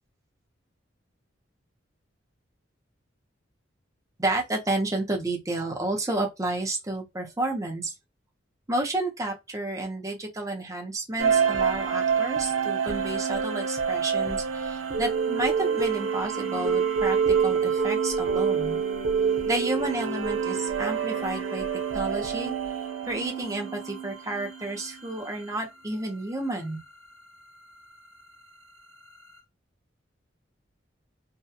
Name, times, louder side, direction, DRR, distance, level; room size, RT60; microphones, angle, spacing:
voice 1, 4.2-7.9 8.7-17.2 17.4-18.8 19.5-21.6 21.9-22.5 23.1-26.8, right 2 dB, 15° right, 0.6 m, -31 dB
sound 1, 11.2-25.3, right 6 dB, 85° right, 0.7 m, -27 dB
2.8 x 2.2 x 2.2 m
head